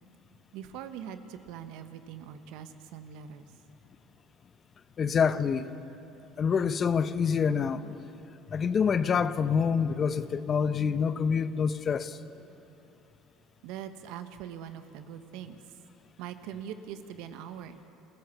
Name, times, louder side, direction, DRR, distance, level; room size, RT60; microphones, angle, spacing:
voice 1, 0.5-3.5 13.6-15.6 16.2-17.8, right 9 dB, 70° right, 9 dB, 1.3 m, -42 dB
voice 2, 5.0-5.7 6.4-7.9 8.5-12.2, left 6 dB, 40° left, 13 dB, 0.9 m, -26 dB
27.5 x 14.5 x 7.1 m, 2.9 s
hypercardioid pair, 80°, 0 cm